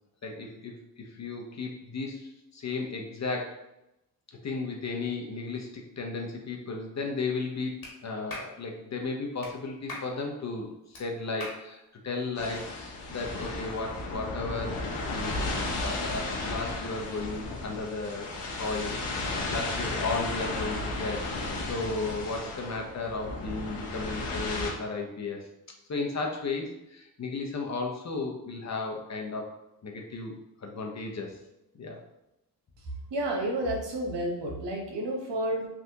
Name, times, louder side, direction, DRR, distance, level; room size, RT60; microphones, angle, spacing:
voice 1, 0.2-3.6 4.4-7.7 8.0-14.8 15.1-15.4 15.7-25.4 25.9-29.4 29.8-31.4 31.7-32.0, left 3 dB, 40° left, 1 dB, 0.8 m, -34 dB
Clapping, 7.8-7.9 8.3-8.5 9.4-9.5 9.9-10.1 10.9-11.0 11.4-11.6, left 2 dB, 55° left, 1.3 m, -39 dB
sound 1, 12.4-24.7, left 2 dB, 70° left, 0.9 m, -34 dB
voice 2, 33.1-35.7, right 1 dB, 75° right, -1 dB, 1.0 m, -30 dB
3.4 x 2.5 x 2.8 m, 0.87 s
supercardioid pair, 55°, 43 cm